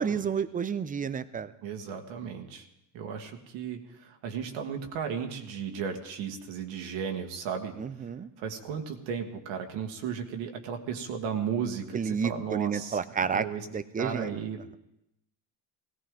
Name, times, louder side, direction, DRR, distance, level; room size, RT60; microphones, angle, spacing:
voice 1, 0.0-1.5 7.8-8.3 11.9-13.5 13.7-14.4, right 6 dB, 20° right, 14 dB, 0.5 m, -30 dB
voice 2, 1.6-2.6 2.9-7.7 8.4-13.0 13.3-13.7 14.0-14.8, right 7 dB, 80° right, 4 dB, 1.7 m, -35 dB
18.0 x 16.5 x 3.7 m, 0.85 s
supercardioid pair, 105°, 46 cm